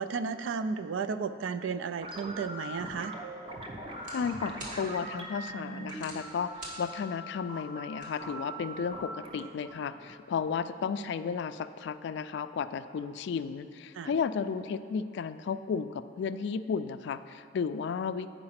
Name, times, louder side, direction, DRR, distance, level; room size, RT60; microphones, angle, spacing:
voice 1, 0.0-3.1 13.9-14.1, right 5 dB, 80° right, 12 dB, 0.4 m, -33 dB
sound 1, 2.0-10.9, right 1 dB, 30° right, 0.7 m, -42 dB
sound 2, 2.8-8.9, right 1 dB, 45° right, 1.5 m, -50 dB
voice 2, 4.1-18.3, left 6 dB, 65° left, 12 dB, 0.3 m, -33 dB
8.6 x 4.9 x 5.7 m, 2.3 s
head